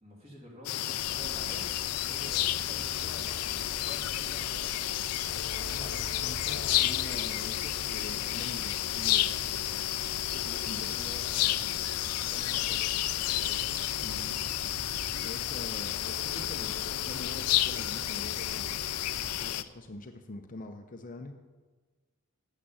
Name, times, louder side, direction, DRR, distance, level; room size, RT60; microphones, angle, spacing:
voice 1, 0.0-3.5 3.7-5.1 5.4-7.6 10.8-11.9 12.2-13.6, equal, 30° right, -3 dB, 2.7 m, -49 dB
sound 1, 0.6-19.6, left 13 dB, 85° left, 0.4 m, -31 dB
sound 2, 1.0-19.5, right 4 dB, 55° right, 0.5 m, -47 dB
voice 2, 5.6-9.6 10.1-10.9 14.0-14.4 15.2-21.3, left 2 dB, 35° left, 6 dB, 0.6 m, -45 dB
8.7 x 7.3 x 7.0 m, 1.3 s
head